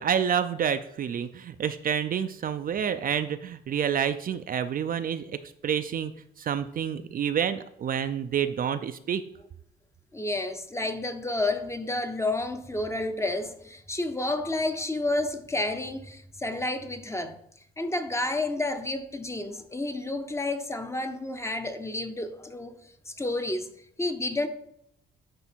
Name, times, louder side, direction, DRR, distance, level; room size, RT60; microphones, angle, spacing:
voice 1, 0.0-5.4 5.6-6.1 6.4-9.2, right 8 dB, 45° right, 0.4 m, -28 dB
voice 2, 10.1-17.4 17.8-22.7 23.1-23.7 24.0-24.5, left 2 dB, 15° left, 0.7 m, -30 dB
9.8 x 3.4 x 4.4 m
cardioid pair, 90°, 20 cm